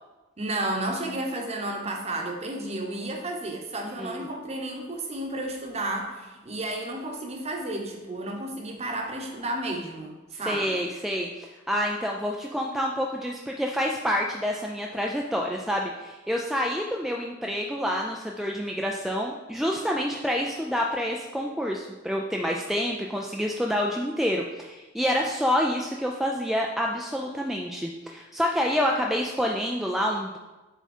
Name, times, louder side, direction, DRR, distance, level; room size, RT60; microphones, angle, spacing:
voice 1, 0.4-10.1 10.4-10.8, right 1 dB, 30° right, 1 dB, 0.9 m, -32 dB
voice 2, 3.8-4.3 10.3-30.4, equal, ahead, -1 dB, 0.3 m, -28 dB
7.0 x 3.6 x 4.3 m, 1.2 s
head